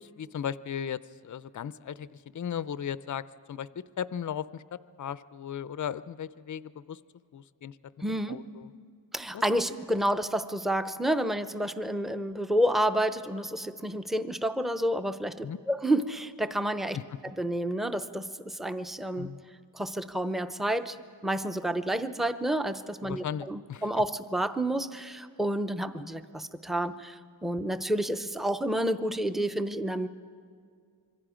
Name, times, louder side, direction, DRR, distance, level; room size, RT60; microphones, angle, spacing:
voice 1, 0.0-7.0 7.3-7.8 8.1-8.7 9.3-9.4 15.4-15.6 16.9-17.0 19.2-19.4 23.0-23.9, left 8 dB, 40° left, 16 dB, 0.5 m, -37 dB
voice 2, 8.0-8.4 9.1-17.0 17.2-19.3 19.7-21.0 21.2-30.1, right 1 dB, ahead, 10 dB, 0.6 m, -29 dB
26.0 x 23.5 x 5.0 m, 2.1 s
wide cardioid pair, 105°, 46 cm